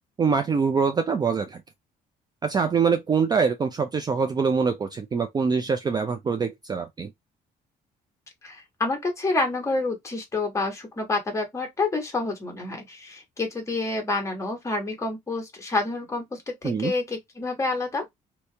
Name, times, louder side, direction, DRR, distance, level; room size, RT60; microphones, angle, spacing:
voice 1, 0.2-1.6 2.4-7.1 16.6-16.9, right 5 dB, 25° right, 0.4 m, -24 dB
voice 2, 8.4-18.0, left 3 dB, 20° left, 1.4 m, -28 dB
2.9 x 2.8 x 3.3 m
cardioid pair, 130°, 16 cm